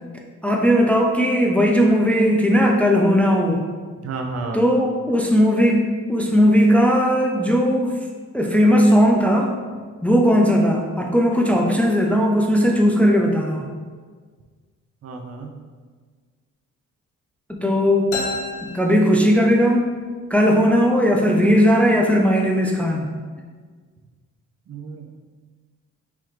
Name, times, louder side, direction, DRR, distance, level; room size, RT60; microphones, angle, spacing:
voice 1, 0.4-3.6 4.5-7.9 8.3-9.5 10.0-13.7 17.5-18.1 18.6-19.9 20.3-23.1, equal, 5° left, 0 dB, 0.5 m, -17 dB
voice 2, 4.0-4.6 15.0-15.5 24.7-25.1, right 4 dB, 55° right, 3 dB, 0.7 m, -31 dB
sound 1, 18.1-19.8, left 2 dB, 75° left, 1.0 m, -31 dB
4.7 x 3.6 x 3.0 m, 1.5 s
cardioid pair, 90°, 30 cm